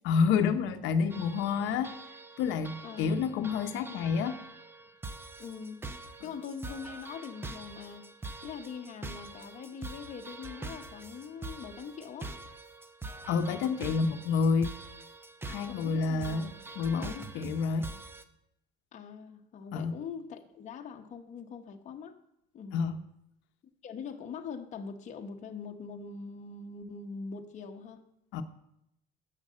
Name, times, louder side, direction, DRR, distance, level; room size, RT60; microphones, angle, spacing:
voice 1, 0.0-1.9 2.4-4.4 13.3-14.7 15.4-17.9 19.7-19.9 22.7-23.0 28.3-28.4, left 5 dB, 80° left, 7 dB, 0.8 m, -29 dB
sound 1, 1.1-18.2, right 3 dB, 10° right, 0.6 m, -44 dB
voice 2, 2.8-3.2 5.4-5.9 6.2-8.1 8.4-12.4 15.7-16.4 18.9-22.2 22.5-22.8 23.8-28.0, left 6 dB, 40° left, 4 dB, 1.1 m, -42 dB
10.5 x 6.7 x 7.5 m, 0.81 s
cardioid pair, 160°, 19 cm